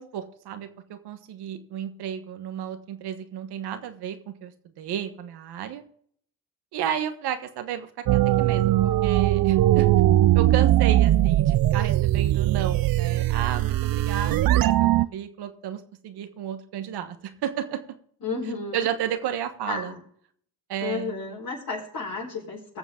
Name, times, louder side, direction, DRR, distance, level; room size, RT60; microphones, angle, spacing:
voice 1, 0.0-4.5 4.8-5.8 6.7-9.9 10.3-17.8 18.7-19.9 20.7-21.4, right 10 dB, 85° right, 9 dB, 1.3 m, -32 dB
sound 1, 8.1-15.1, right 14 dB, 65° right, 0.6 m, -20 dB
voice 2, 18.2-18.9 19.7-20.0 20.8-22.8, left 4 dB, 65° left, -7 dB, 4.4 m, -32 dB
18.5 x 7.2 x 3.8 m, 0.62 s
supercardioid pair, 55°, 38 cm